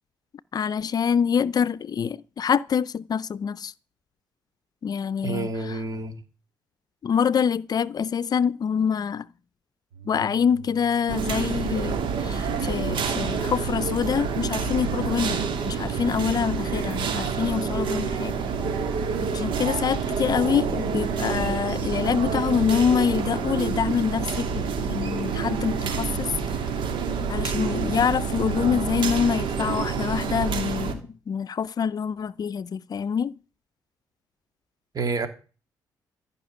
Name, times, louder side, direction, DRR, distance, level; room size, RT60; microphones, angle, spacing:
voice 1, 0.5-3.7 4.8-5.5 7.0-9.3 10.1-18.4 19.3-24.6 24.9-26.3 27.3-33.3, left 7 dB, 50° left, 0.6 m, -25 dB
voice 2, 5.2-6.2 34.9-35.3, right 3 dB, 45° right, 3.1 m, -28 dB
sound 1, 9.9-15.5, right 1 dB, 90° right, 3.0 m, -46 dB
sound 2, 11.1-30.9, right 6 dB, 75° right, 2.7 m, -27 dB
14.5 x 6.0 x 9.9 m
supercardioid pair, 65°, 8 cm